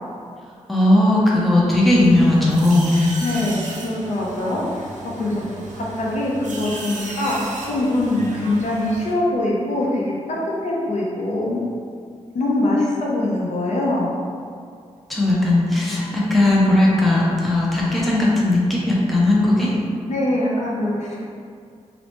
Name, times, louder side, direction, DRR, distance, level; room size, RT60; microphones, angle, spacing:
voice 1, 0.7-3.0 15.1-19.7, left 1 dB, ahead, -6 dB, 0.4 m, -17 dB
sound 1, 1.9-9.1, right 2 dB, 85° right, 0.4 m, -35 dB
voice 2, 3.2-4.9 5.2-10.4 10.6-11.6 12.3-14.1 20.1-21.2, left 1 dB, 70° left, -4 dB, 0.5 m, -23 dB
2.9 x 2.0 x 2.9 m, 2.2 s
wide cardioid pair, 175°, 12 cm